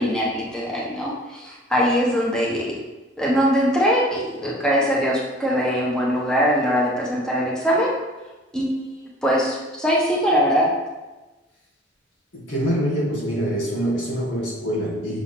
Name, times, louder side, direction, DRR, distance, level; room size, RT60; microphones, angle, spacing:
voice 1, 0.0-2.8 3.2-7.9 8.5-10.7, equal, 5° left, -4 dB, 1.1 m, -22 dB
voice 2, 12.3-15.2, equal, 90° left, -5 dB, 2.3 m, -25 dB
6.1 x 4.0 x 5.8 m, 1.1 s
head